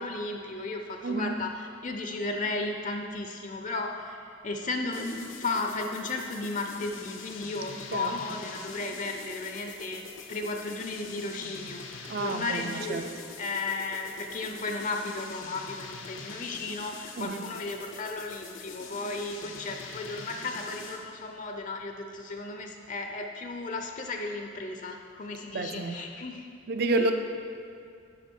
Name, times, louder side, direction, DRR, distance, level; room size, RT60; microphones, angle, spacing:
voice 1, 0.0-10.0 10.3-26.5 27.0-27.1, left 3 dB, 40° left, 4 dB, 0.5 m, -34 dB
voice 2, 1.0-1.4 7.9-8.2 12.1-13.1 17.2-17.5 25.5-25.9 26.7-27.1, right 2 dB, 55° right, 7 dB, 0.5 m, -30 dB
sound 1, 4.9-21.1, left 4 dB, 85° left, 0.8 m, -44 dB
11.5 x 5.1 x 4.5 m, 2.3 s
head